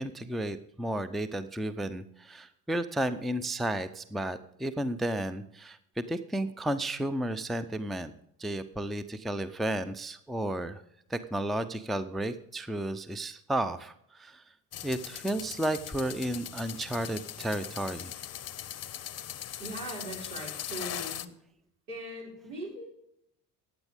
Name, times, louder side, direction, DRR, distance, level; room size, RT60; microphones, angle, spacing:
voice 1, 0.0-8.1 8.4-10.8 11.1-14.4 14.8-18.1, right 1 dB, ahead, 13 dB, 0.6 m, -33 dB
sound 1, 14.7-21.3, left 10 dB, 30° left, 0.8 m, -40 dB
voice 2, 19.6-21.2 21.9-22.9, right 1 dB, 75° right, -3 dB, 6.0 m, -40 dB
15.0 x 9.7 x 3.6 m, 0.74 s
hypercardioid pair, 60°, 48 cm